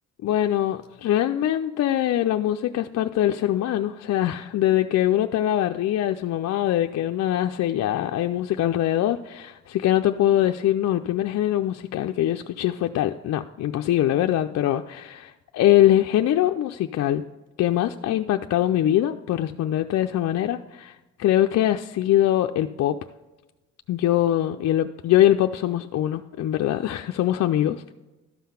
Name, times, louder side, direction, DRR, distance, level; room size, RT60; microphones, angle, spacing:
voice 1, 0.2-17.2 17.6-23.0 23.9-27.9, left 12 dB, 60° left, 5 dB, 0.4 m, -23 dB
12.5 x 5.7 x 5.7 m, 1.1 s
cardioid pair, 90°, 30 cm